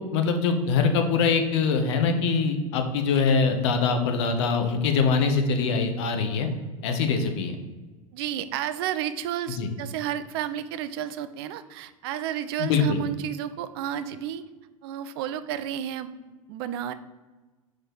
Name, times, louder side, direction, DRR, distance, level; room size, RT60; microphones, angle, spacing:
voice 1, 0.0-6.5 6.8-7.6 9.6-9.7 12.6-13.0, left 5 dB, 50° left, 6 dB, 0.9 m, -23 dB
voice 2, 8.1-14.4 14.8-16.9, right 10 dB, 45° right, 12 dB, 0.5 m, -32 dB
4.9 x 4.3 x 5.9 m, 1.3 s
figure-of-eight pair, 85°, 18 cm